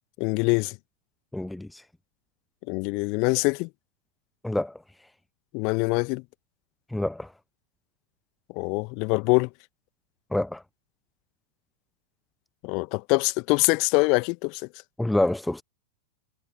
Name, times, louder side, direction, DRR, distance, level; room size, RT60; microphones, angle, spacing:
voice 1, 0.2-0.8 2.7-3.7 5.5-6.2 8.5-9.5 12.6-14.7, left 31 dB, 45° left, 1.7 m, -24 dB
voice 2, 1.3-1.8 4.4-4.8 6.9-7.3 10.3-10.6 15.0-15.6, left 1 dB, 5° left, 0.8 m, -27 dB
figure-of-eight pair, 90°, 0 cm